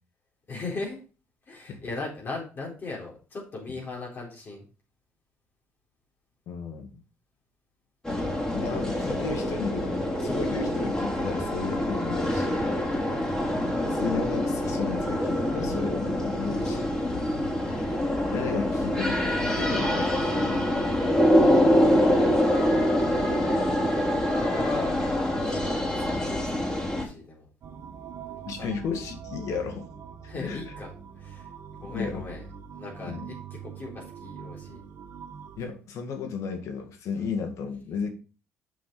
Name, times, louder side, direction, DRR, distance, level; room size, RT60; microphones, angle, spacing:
voice 1, 0.5-1.0 1.5-4.7 12.9-13.2 17.2-17.5 21.7-22.4 24.2-24.9 25.4-27.5 28.2-28.7 30.3-31.5 31.8-32.4 32.7-33.4 33.6-34.8 37.1-37.3, left 3 dB, 40° left, -3 dB, 4.0 m, -38 dB
voice 2, 6.5-7.0 8.5-12.6 13.9-16.9 18.3-20.9 22.7-22.9 28.5-29.9 30.4-30.6 31.8-32.2 33.1-33.2 35.6-38.1, left 5 dB, 65° left, 4 dB, 2.0 m, -34 dB
sound 1, 8.0-27.0, left 1 dB, 15° left, 4.0 m, -25 dB
sound 2, 27.6-35.6, right 7 dB, 60° right, 1.9 m, -43 dB
7.6 x 5.8 x 5.2 m, 0.35 s
cardioid pair, 90°, 5 cm